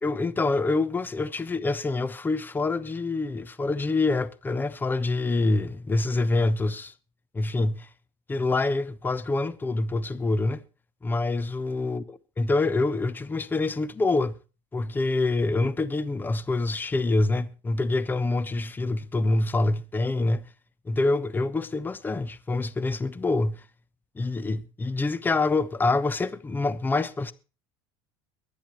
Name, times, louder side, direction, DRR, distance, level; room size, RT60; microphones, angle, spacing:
voice 1, 0.0-6.9 7.3-7.9 8.3-10.6 11.0-14.4 14.7-20.4 20.8-23.6 24.2-27.3, left 2 dB, 15° left, 1.0 m, -26 dB
22.5 x 10.5 x 3.0 m
supercardioid pair, 95°, 11 cm